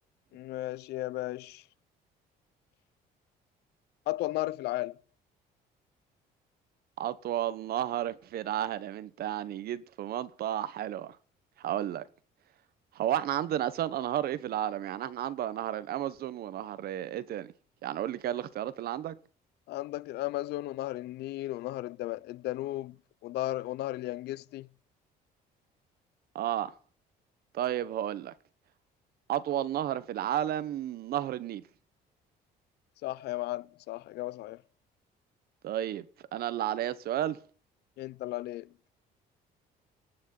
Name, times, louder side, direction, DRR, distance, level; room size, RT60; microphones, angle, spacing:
voice 1, 0.3-1.6 4.1-5.0 19.7-23.0 23.2-24.7 33.0-34.6 38.0-38.7, left 16 dB, 75° left, 0.6 m, -35 dB
voice 2, 7.0-11.2 11.6-12.0 12.9-17.5 17.8-19.2 26.3-26.7 27.5-28.3 29.3-31.6 35.6-36.1 36.3-37.4, right 11 dB, 65° right, 1.3 m, -32 dB
18.5 x 6.5 x 7.9 m
cardioid pair, 110°, 17 cm